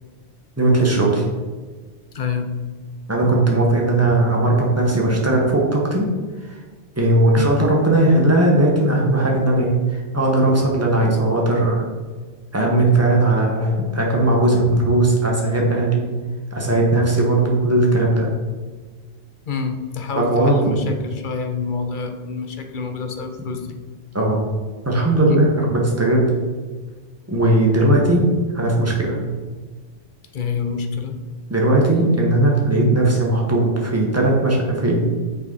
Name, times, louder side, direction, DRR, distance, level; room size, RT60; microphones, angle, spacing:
voice 1, 0.6-1.3 3.1-6.1 6.4-6.6 7.0-11.8 12.5-16.0 16.5-18.3 20.2-20.7 24.1-24.4 24.8-26.2 27.3-29.2 31.5-35.1, right 2 dB, 15° right, -2 dB, 1.3 m, -18 dB
voice 2, 2.1-2.5 19.5-23.7 30.3-31.2, left 5 dB, 50° left, 6 dB, 0.8 m, -27 dB
6.4 x 5.0 x 4.0 m, 1.4 s
omnidirectional pair, 1.2 m